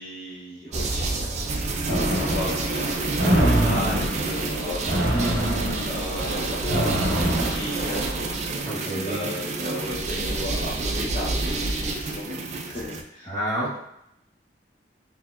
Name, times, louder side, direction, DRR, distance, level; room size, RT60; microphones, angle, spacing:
voice 1, 0.0-1.3 1.8-5.6 5.9-8.0 9.0-13.3, left 1 dB, 40° left, -8 dB, 0.8 m, -35 dB
sound 1, 0.7-13.0, right 2 dB, 40° right, 0.4 m, -29 dB
sound 2, 1.9-8.3, right 1 dB, 75° right, 0.9 m, -25 dB
voice 2, 8.6-9.2 13.3-13.8, right 1 dB, 20° left, -9 dB, 1.3 m, -29 dB
4.5 x 2.6 x 2.4 m, 0.80 s
head